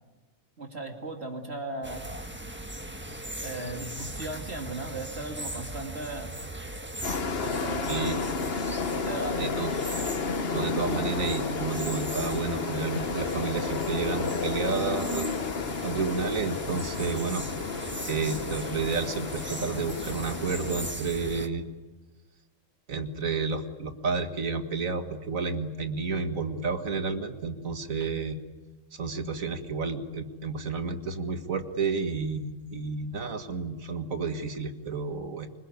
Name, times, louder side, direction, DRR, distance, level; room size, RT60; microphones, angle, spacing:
voice 1, 0.6-2.0 3.4-6.3 7.4-8.2 8.9-9.5, right 2 dB, 50° right, 3 dB, 2.9 m, -37 dB
sound 1, 1.8-21.5, right 1 dB, 10° right, 1.4 m, -39 dB
sound 2, 7.0-20.9, left 4 dB, 50° left, 1.3 m, -32 dB
voice 2, 7.9-8.2 9.4-9.7 10.5-15.3 15.8-17.5 18.1-21.6 22.9-28.4 28.9-35.5, right 4 dB, 90° right, 7 dB, 2.1 m, -31 dB
26.0 x 21.0 x 9.5 m, 1.2 s
omnidirectional pair, 1.4 m